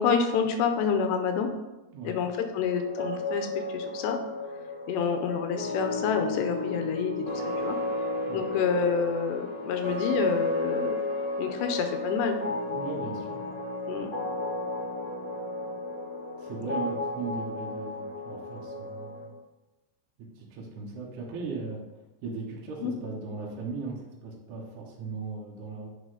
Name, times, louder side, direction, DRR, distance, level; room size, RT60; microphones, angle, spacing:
voice 1, 0.0-1.5 2.0-4.2 4.9-7.8 8.3-11.0 11.4-12.4 13.9-14.1 16.6-16.7 22.8-22.9, left 6 dB, 85° left, 6 dB, 2.8 m, -28 dB
sound 1, 2.6-19.3, left 2 dB, 40° left, 1.8 m, -33 dB
voice 2, 12.6-13.5 16.4-19.3 20.2-25.9, right 4 dB, 70° right, -2 dB, 2.0 m, -38 dB
8.2 x 6.0 x 3.8 m, 1.0 s
omnidirectional pair, 5.0 m